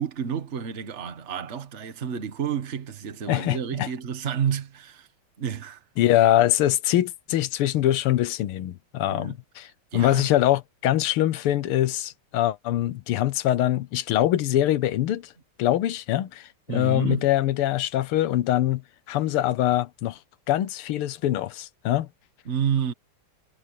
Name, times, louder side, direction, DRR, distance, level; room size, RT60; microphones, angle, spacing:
voice 1, 0.0-5.1 5.4-5.8 9.1-9.3 9.9-10.3 16.7-17.3 22.4-22.9, right 7 dB, 35° right, 1.6 m, -30 dB
voice 2, 3.3-3.9 6.0-15.3 15.6-18.8 19.1-20.2 20.5-22.1, left 13 dB, 90° left, 1.8 m, -23 dB
omnidirectional pair, 2.3 m